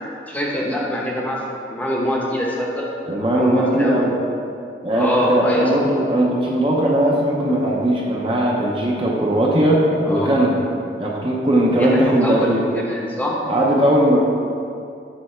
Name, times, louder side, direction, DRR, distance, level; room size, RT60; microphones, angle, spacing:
voice 1, 0.3-1.4 1.7-2.9 3.2-4.0 4.9-5.8 10.1-10.4 11.8-12.5 12.8-13.4, equal, 10° left, -3 dB, 0.9 m, -24 dB
voice 2, 3.1-4.1 4.8-10.6 11.0-12.6 13.5-14.2, right 1 dB, 25° right, -3 dB, 0.7 m, -18 dB
9.6 x 3.4 x 5.7 m, 2.5 s
head